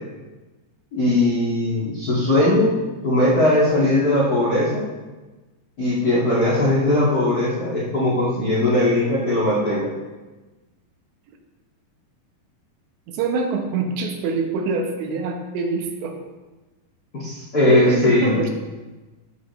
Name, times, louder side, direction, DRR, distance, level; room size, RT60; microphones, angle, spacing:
voice 1, 0.9-2.7 3.0-4.8 5.8-9.9 17.1-18.4, left 1 dB, 55° left, -7 dB, 1.0 m, -19 dB
voice 2, 13.1-16.2 17.7-18.5, right 4 dB, 80° right, 3 dB, 3.4 m, -24 dB
13.5 x 7.9 x 3.2 m, 1.2 s
omnidirectional pair, 5.1 m